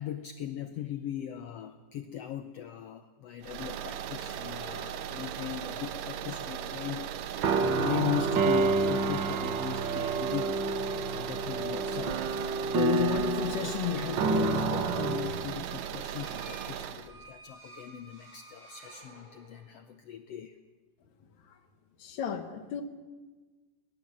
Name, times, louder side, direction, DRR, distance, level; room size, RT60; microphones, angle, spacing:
voice 1, 0.0-20.6, left 10 dB, 80° left, 9 dB, 1.4 m, -37 dB
sound 1, 3.4-17.1, right 9 dB, 85° right, 2.8 m, -38 dB
sound 2, 7.4-15.8, right 4 dB, 65° right, 1.1 m, -29 dB
sound 3, 15.9-19.8, right 2 dB, 20° right, 6.0 m, -52 dB
voice 2, 22.0-22.8, left 7 dB, 60° left, 9 dB, 2.5 m, -36 dB
21.0 x 19.0 x 7.5 m, 1.3 s
omnidirectional pair, 3.8 m